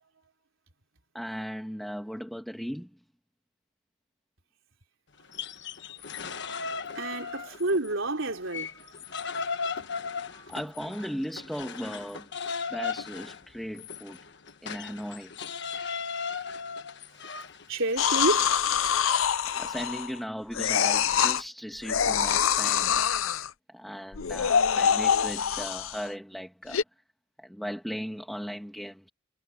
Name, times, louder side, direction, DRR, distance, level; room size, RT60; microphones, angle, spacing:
voice 1, 1.1-2.9 10.5-12.3 12.7-14.2 14.6-15.3 15.7-16.0 19.6-26.8 27.4-29.1, equal, ahead, 2.4 m, -37 dB
sound 1, 5.2-7.9 8.3-18.5, left 5 dB, 55° left, 1.3 m, -37 dB
voice 2, 6.9-9.2 9.7-9.8 10.3-10.5 17.7-18.8, right 2 dB, 70° right, 3.8 m, -30 dB
sound 2, 18.0-20.2 20.5-21.4 21.8-23.5 24.1-26.1 26.7-26.8, left 8 dB, 75° left, 0.7 m, -25 dB
head